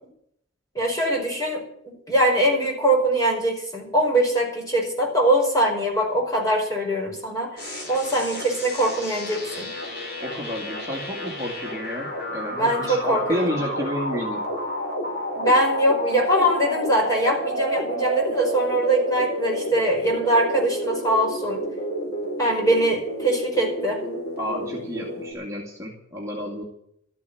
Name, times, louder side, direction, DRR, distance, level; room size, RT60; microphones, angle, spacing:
voice 1, 0.7-7.6 7.9-9.7 12.6-13.6 15.4-21.6 22.4-24.0, right 1 dB, 15° left, -1 dB, 5.2 m, -22 dB
sound 1, 7.6-25.3, equal, 50° left, 4.5 m, -30 dB
voice 2, 10.2-14.4 24.4-26.6, equal, 15° right, -3 dB, 2.4 m, -31 dB
13.5 x 8.4 x 9.4 m, 0.71 s
head